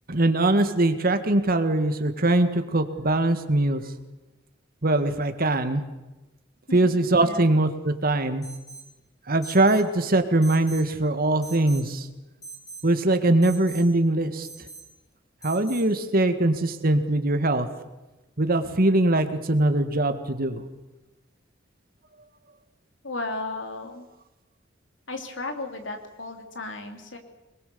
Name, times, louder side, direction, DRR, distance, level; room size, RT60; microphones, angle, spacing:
voice 1, 0.1-3.8 4.8-5.8 6.7-8.4 9.3-12.1 12.8-14.5 15.4-17.7 18.4-20.6, right 2 dB, 50° right, 8 dB, 1.8 m, -22 dB
voice 2, 7.2-7.5 23.0-24.1 25.1-27.2, left 2 dB, 70° left, 5 dB, 3.1 m, -34 dB
Alarm, 8.4-8.9 9.4-9.9 10.4-10.9 11.4-11.9 12.4-12.9 13.4-13.9 14.4-14.9 15.4-15.9, right 4 dB, 20° left, 7.3 m, -42 dB
24.0 x 21.5 x 7.0 m, 1.1 s
head